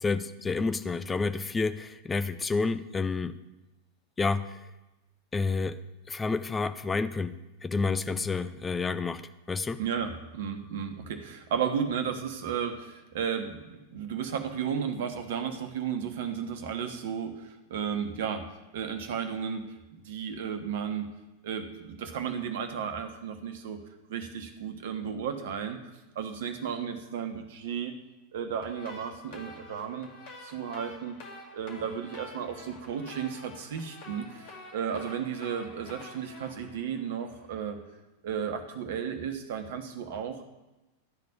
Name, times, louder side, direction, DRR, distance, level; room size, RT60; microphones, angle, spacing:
voice 1, 0.0-3.4 4.2-4.7 5.3-5.8 6.1-9.8, left 4 dB, 15° left, 11 dB, 0.5 m, -30 dB
voice 2, 9.8-18.4 18.7-19.7 19.9-21.1 21.4-23.8 24.1-25.8 26.1-28.0 28.3-30.1 30.4-31.2 31.5-37.8 38.2-40.4, right 7 dB, 55° right, 7 dB, 1.2 m, -34 dB
Cloudy Fart Melody, 28.6-37.7, left 2 dB, 50° left, 2.0 m, -48 dB
12.5 x 4.3 x 8.2 m, 1.0 s
figure-of-eight pair, 90°, 0 cm